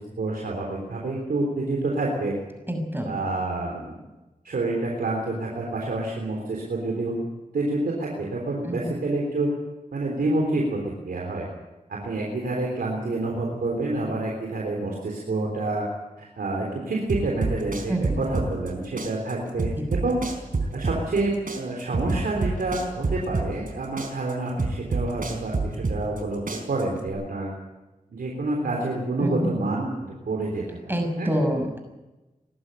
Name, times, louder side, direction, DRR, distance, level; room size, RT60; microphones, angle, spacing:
voice 1, 0.2-2.3 3.0-3.8 4.4-7.1 7.5-9.5 9.9-10.8 11.1-11.4 11.9-15.8 16.2-19.7 20.0-20.2 20.7-26.4 26.7-27.5 28.1-31.4, right 2 dB, 90° right, -1 dB, 3.6 m, -28 dB
voice 2, 2.7-3.2 8.6-9.0 17.9-18.2 29.2-29.5 30.9-31.8, equal, 15° right, 4 dB, 6.1 m, -26 dB
sound 1, 17.1-18.7 19.0-21.2 21.5-23.7 24.0-26.2 26.5-27.1, right 3 dB, 65° right, 4.5 m, -27 dB
22.0 x 12.0 x 10.0 m, 1.1 s
cardioid pair, 45°, 15 cm